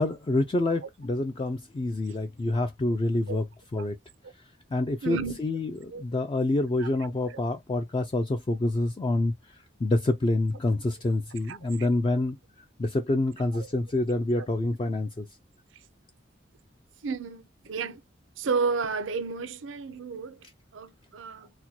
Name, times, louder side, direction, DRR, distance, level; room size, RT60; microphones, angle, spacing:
voice 1, 0.0-3.5 3.7-4.0 4.7-12.4 12.8-15.3, left 2 dB, 25° left, 0.3 m, -27 dB
voice 2, 5.0-5.4 5.9-6.0 6.8-6.9 7.3-7.4 11.5-11.9 13.6-13.7 17.0-18.0 18.4-20.4 20.7-21.5, right 4 dB, 75° right, 0.5 m, -32 dB
4.2 x 2.2 x 2.7 m
head